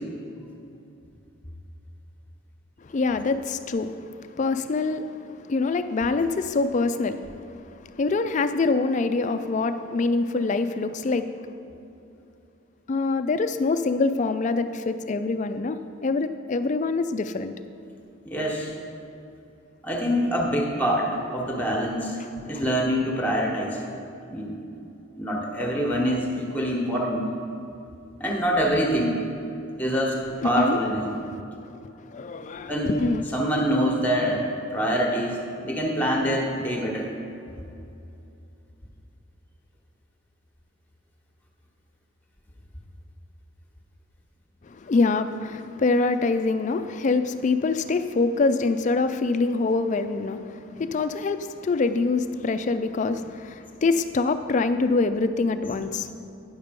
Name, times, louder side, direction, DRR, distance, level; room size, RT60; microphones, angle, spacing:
voice 1, 2.8-7.3 7.5-11.3 12.9-17.5 30.4-30.8 32.1-33.2 44.6-56.1, left 3 dB, 35° left, 10 dB, 0.3 m, -25 dB
voice 2, 18.2-18.7 19.8-22.2 22.4-23.8 24.3-24.6 25.2-27.3 28.2-29.2 29.8-30.1 30.4-31.2 32.7-33.0 33.3-34.4 34.7-37.1, equal, 10° left, -1 dB, 1.1 m, -25 dB
9.5 x 6.6 x 5.2 m, 2.8 s
head